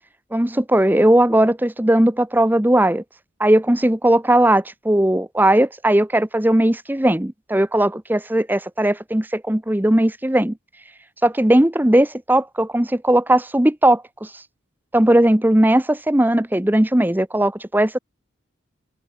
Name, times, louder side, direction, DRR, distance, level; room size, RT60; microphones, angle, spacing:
voice 1, 0.3-3.0 3.4-10.5 11.2-14.4 14.9-18.0, right 1 dB, 10° right, 0.8 m, -18 dB
head